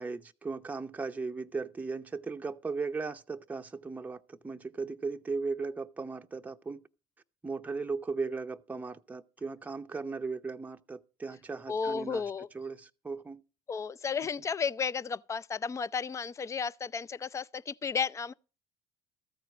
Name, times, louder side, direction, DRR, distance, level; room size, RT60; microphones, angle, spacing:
voice 1, 0.0-6.9 7.4-12.2 12.5-13.4, right 4 dB, 15° right, 0.7 m, -37 dB
voice 2, 11.7-12.5 13.7-18.3, left 5 dB, 25° left, 0.5 m, -33 dB
14.0 x 4.6 x 8.3 m
supercardioid pair, 95°, 11 cm